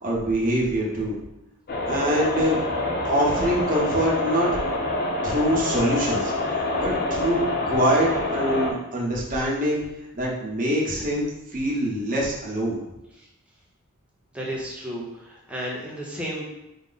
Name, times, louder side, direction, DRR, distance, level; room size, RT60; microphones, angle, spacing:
voice 1, 0.0-1.2 1.9-2.6 3.0-4.5 5.2-7.4 7.6-9.8 10.1-12.8, equal, 40° right, -4 dB, 1.0 m, -24 dB
sound 1, 1.7-8.7, left 2 dB, 45° left, 0.6 m, -26 dB
voice 2, 14.3-16.4, equal, 5° right, -4 dB, 0.8 m, -33 dB
5.0 x 2.1 x 3.9 m, 0.92 s
head